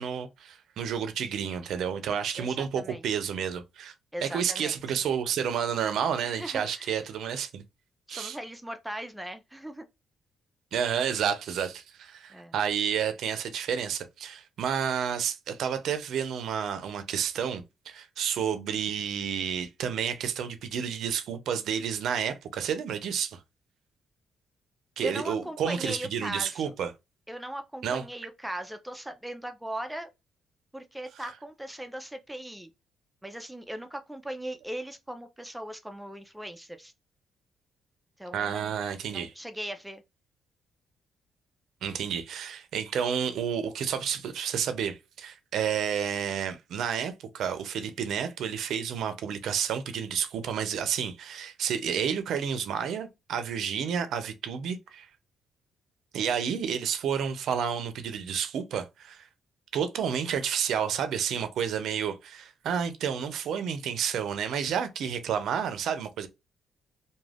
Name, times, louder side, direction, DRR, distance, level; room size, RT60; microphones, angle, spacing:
voice 1, 0.0-3.9 4.2-7.6 8.1-8.4 10.7-23.4 25.0-26.9 27.8-28.0 38.3-39.3 41.8-55.1 56.1-59.3 59.7-66.3, right 8 dB, 75° right, 0.4 m, -30 dB
voice 2, 2.4-3.0 4.1-4.8 6.2-7.0 8.1-9.9 12.3-12.5 25.0-26.7 27.3-30.1 30.7-32.7 33.2-36.9 38.2-38.8 39.1-40.0, right 1 dB, 5° right, 0.3 m, -39 dB
2.3 x 2.2 x 3.3 m
cardioid pair, 90°, 0 cm